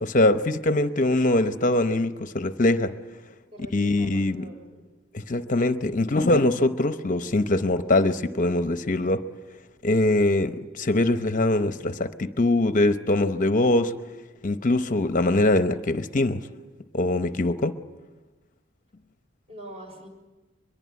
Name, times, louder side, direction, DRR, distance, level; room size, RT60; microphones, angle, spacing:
voice 1, 0.0-2.9 3.7-4.5 5.1-9.2 9.8-13.9 14.4-16.5 16.9-17.8, left 2 dB, 40° left, 9 dB, 0.8 m, -22 dB
voice 2, 3.5-4.8 19.5-20.1, equal, 30° right, 3 dB, 6.1 m, -43 dB
23.5 x 22.5 x 9.5 m, 1.2 s
head